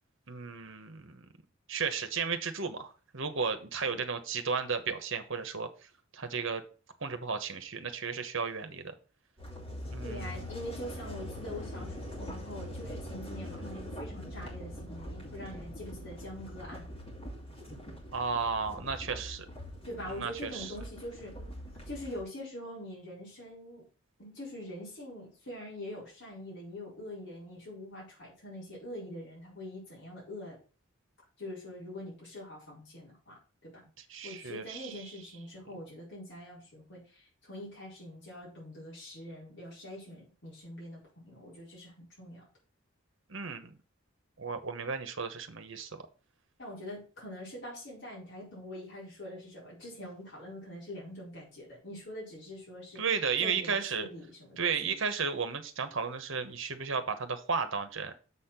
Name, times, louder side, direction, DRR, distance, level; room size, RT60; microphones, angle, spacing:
voice 1, 0.3-1.2 1.7-5.7 6.1-6.6 7.0-8.9 9.9-10.5 18.1-19.5 20.1-20.7 34.1-35.0 43.3-43.7 44.4-46.1 53.0-54.1 54.6-58.1, right 5 dB, 65° right, 9 dB, 1.1 m, -34 dB
sound 1, 9.4-22.2, equal, 25° left, 2.7 m, -43 dB
voice 2, 10.0-16.9 19.8-21.3 21.9-23.8 24.2-30.6 31.4-33.7 34.2-42.5 46.6-53.0 53.4-54.9, left 1 dB, 60° left, -6 dB, 4.5 m, -44 dB
7.3 x 4.3 x 5.7 m, 0.36 s
head